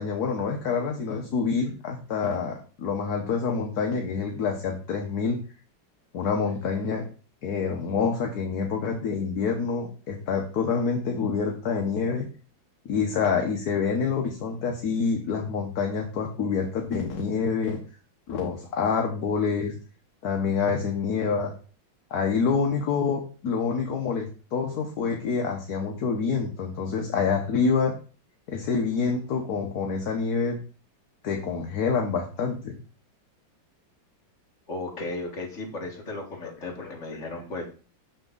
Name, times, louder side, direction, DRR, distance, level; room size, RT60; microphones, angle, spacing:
voice 1, 0.0-5.4 6.1-7.0 7.4-12.3 12.8-17.8 18.3-19.7 20.2-21.5 22.1-27.9 28.5-30.6 31.2-32.8 36.8-36.9, left 5 dB, 55° left, 2 dB, 1.4 m, -27 dB
voice 2, 34.7-37.6, left 2 dB, 35° left, 0 dB, 2.0 m, -35 dB
7.0 x 6.6 x 3.9 m, 0.37 s
omnidirectional pair, 2.2 m